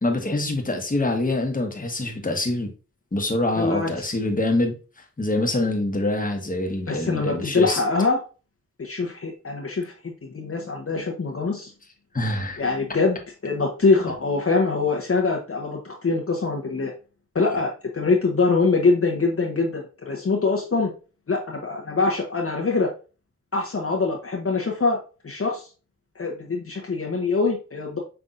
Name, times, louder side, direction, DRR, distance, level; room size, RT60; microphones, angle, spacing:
voice 1, 0.0-2.7 3.1-7.8 12.1-12.7, left 2 dB, 25° left, 1.2 m, -25 dB
voice 2, 3.6-4.1 6.9-8.2 8.8-11.7 12.6-13.2 13.4-16.9 17.3-20.9 21.3-22.9 23.5-25.7 26.2-28.0, left 3 dB, 45° left, 0.9 m, -24 dB
5.6 x 3.4 x 2.5 m
cardioid pair, 45°, 31 cm